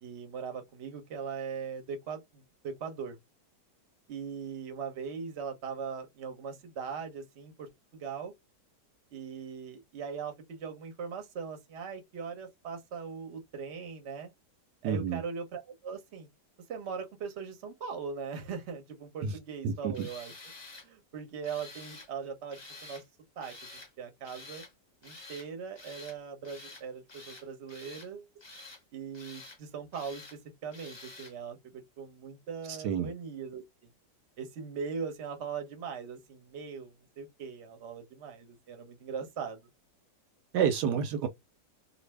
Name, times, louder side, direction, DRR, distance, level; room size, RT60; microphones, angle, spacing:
voice 1, 0.0-3.2 4.1-8.3 9.1-14.3 14.8-16.3 16.7-20.3 20.8-23.0 23.4-23.5 24.0-24.6 25.0-28.3 28.9-33.6 34.4-39.7, right 6 dB, 50° right, 0.9 m, -40 dB
voice 2, 14.8-15.2 19.2-19.3 19.6-20.1 32.7-33.1 40.5-41.3, right 7 dB, 75° right, 1.1 m, -29 dB
Tools, 19.9-20.9 21.4-22.1 22.5-23.0 23.4-23.9 24.2-24.7 25.0-25.5 25.7-26.2 26.4-26.8 27.1-28.1 28.4-28.8 29.1-29.6 29.9-30.4 30.7-31.3, left 2 dB, 30° left, 0.5 m, -49 dB
2.6 x 2.6 x 3.2 m
omnidirectional pair, 1.9 m